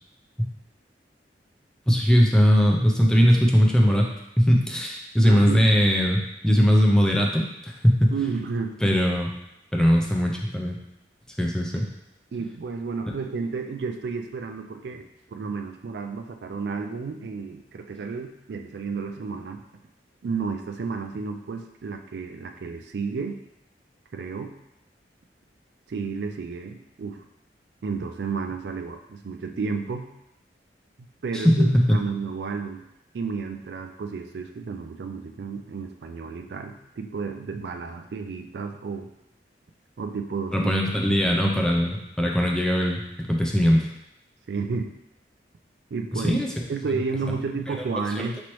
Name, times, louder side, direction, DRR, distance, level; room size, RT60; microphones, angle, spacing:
voice 1, 1.9-4.1 4.4-8.1 8.8-9.3 9.7-10.8 11.4-11.8 31.4-32.0 40.5-43.9 46.1-46.5 48.2-48.3, equal, 5° left, -1 dB, 0.5 m, -20 dB
voice 2, 5.2-5.6 8.1-8.8 12.3-15.0 15.3-19.6 20.2-23.4 24.1-24.5 25.9-27.2 27.8-30.1 31.0-32.8 33.1-39.1 40.0-40.7 44.5-44.9 45.9-46.4 46.7-48.4, right 5 dB, 65° right, 5 dB, 0.4 m, -32 dB
5.2 x 3.1 x 3.0 m, 0.83 s
head